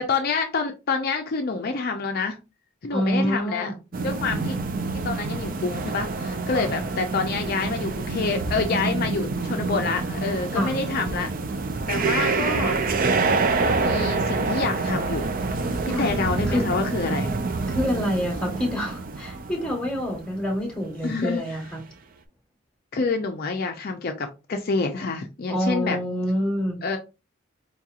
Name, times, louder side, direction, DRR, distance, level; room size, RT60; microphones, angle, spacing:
voice 1, 0.0-2.4 2.8-3.7 4.0-4.6 5.0-11.3 11.9-12.8 13.6-15.4 15.9-17.3 21.0-21.4 22.9-26.0 26.8-27.0, left 4 dB, 45° left, 0.4 m, -27 dB
voice 2, 2.9-3.7 6.6-6.7 10.5-10.8 11.9-12.1 15.9-16.1 16.5-16.7 17.7-21.8 25.5-26.8, equal, 5° left, 1.1 m, -27 dB
sound 1, 3.9-20.5 21.0-21.1 21.6-21.7, right 3 dB, 40° right, 0.4 m, -27 dB
4.5 x 2.8 x 2.4 m
head